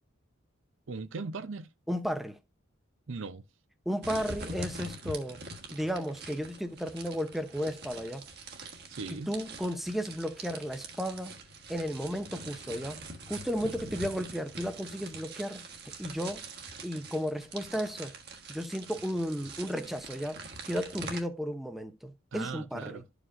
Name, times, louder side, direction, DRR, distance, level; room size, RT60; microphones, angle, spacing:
voice 1, 0.9-1.7 3.1-3.4 8.9-9.3 13.6-14.1 22.3-23.1, right 4 dB, 65° right, 0.6 m, -39 dB
voice 2, 1.9-2.4 3.9-5.4 5.7-8.2 9.1-11.4 11.7-15.6 16.0-16.4 16.8-18.1 18.5-23.0, equal, ahead, 0.6 m, -34 dB
sound 1, 4.0-21.2, right 3 dB, 50° right, 1.4 m, -44 dB
12.5 x 5.1 x 2.5 m
head